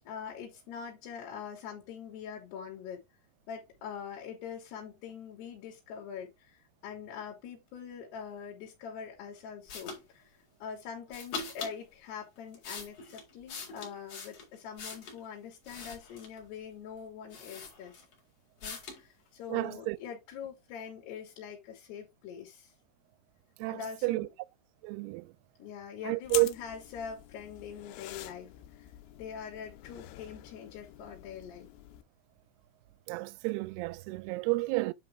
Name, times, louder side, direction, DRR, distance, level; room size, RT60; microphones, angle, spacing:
voice 1, 0.1-3.0 3.5-10.3 10.6-18.0 18.6-22.7 23.7-24.3 25.6-28.9 29.2-31.7, left 7 dB, 70° left, 4.5 m, -43 dB
sound 1, 9.7-10.0 11.1-11.8 12.4-15.2 15.6-16.4 17.0-17.1 17.3-18.2 18.6-19.0, left 4 dB, 40° left, 2.8 m, -42 dB
voice 2, 19.5-20.0 23.6-24.3 24.8-25.3 26.1-26.5 33.1-34.9, right 24 dB, 80° right, 2.4 m, -31 dB
sound 2, 26.2-32.0, left 15 dB, 90° left, 3.0 m, -45 dB
10.5 x 3.5 x 3.6 m
omnidirectional pair, 4.9 m